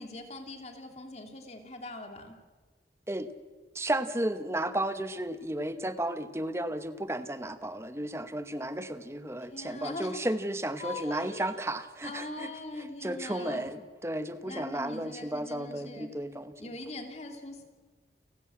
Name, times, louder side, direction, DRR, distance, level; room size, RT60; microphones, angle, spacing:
voice 1, 0.0-2.4 9.5-10.3 10.8-11.5 12.0-13.7 14.5-16.1 16.6-17.6, left 2 dB, 35° left, 4 dB, 2.8 m, -41 dB
voice 2, 3.7-16.7, right 1 dB, 15° right, 11 dB, 1.1 m, -33 dB
29.5 x 11.5 x 8.7 m, 1.3 s
head